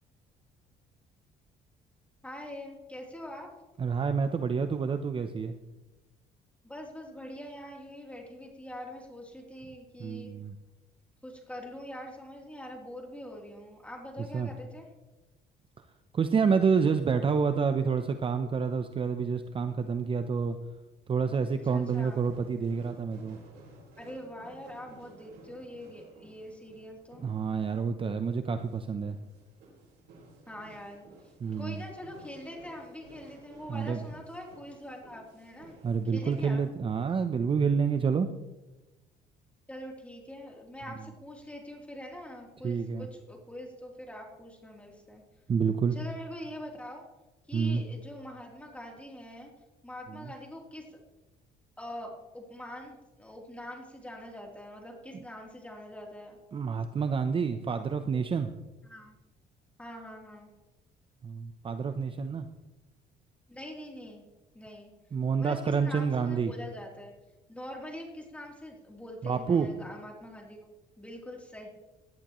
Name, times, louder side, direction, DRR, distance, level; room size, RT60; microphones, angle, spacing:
voice 1, 2.2-3.5 6.6-10.3 11.2-14.9 21.7-22.2 24.0-27.2 30.5-31.1 31.6-35.8 36.1-36.6 39.7-45.2 45.9-47.0 47.5-49.5 49.8-51.0 51.8-56.4 58.8-59.1 59.8-60.5 63.5-64.2 64.5-64.9 65.4-67.1 67.5-70.6 71.0-71.7, left 1 dB, 10° left, -1 dB, 3.2 m, -44 dB
voice 2, 3.8-5.5 10.0-10.5 14.3-14.5 16.1-20.6 21.1-23.4 27.2-29.2 31.4-31.8 33.7-34.0 35.8-38.3 42.6-43.1 45.5-46.0 47.5-47.8 56.5-58.5 61.2-62.4 65.1-66.5 69.2-69.7, right 5 dB, 30° right, 9 dB, 0.7 m, -28 dB
sound 1, 21.8-36.7, right 3 dB, 85° right, 4.6 m, -55 dB
18.0 x 11.0 x 3.1 m, 1.0 s
cardioid pair, 110°, 17 cm